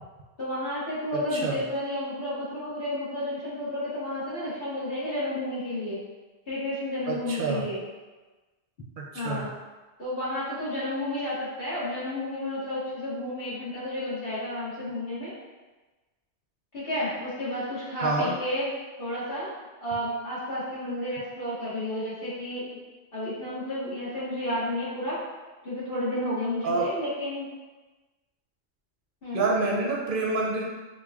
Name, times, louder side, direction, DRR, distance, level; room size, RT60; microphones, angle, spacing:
voice 1, 0.4-6.0 6.5-7.8 9.1-9.5 10.0-15.3 16.7-18.7 19.0-19.5 19.8-22.8 23.1-25.2 25.6-27.5 29.2-29.5, left 1 dB, 55° left, -11 dB, 1.9 m, -31 dB
voice 2, 1.1-1.6 7.1-7.7 9.0-9.5 18.0-18.3 26.6-26.9 29.3-30.6, right 3 dB, 55° right, -3 dB, 0.7 m, -27 dB
5.2 x 2.5 x 2.3 m, 1.2 s
omnidirectional pair, 1.1 m